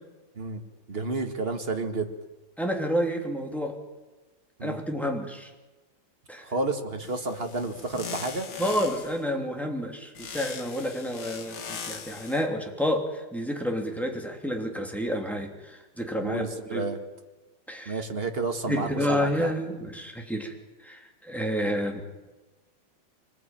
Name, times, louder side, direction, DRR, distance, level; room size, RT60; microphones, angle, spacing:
voice 1, 0.9-2.1 4.6-4.8 6.4-8.5 16.2-17.0 17.9-19.5, right 3 dB, 30° right, 5 dB, 2.0 m, -31 dB
voice 2, 2.6-3.8 4.6-5.5 6.3-6.5 8.6-16.9 17.7-18.0 18.7-20.5 20.8-22.0, equal, ahead, 1 dB, 3.0 m, -29 dB
sound 1, 7.0-9.2 10.2-12.4, left 6 dB, 80° left, 2.7 m, -40 dB
24.5 x 20.0 x 9.1 m, 1.2 s
omnidirectional pair, 2.3 m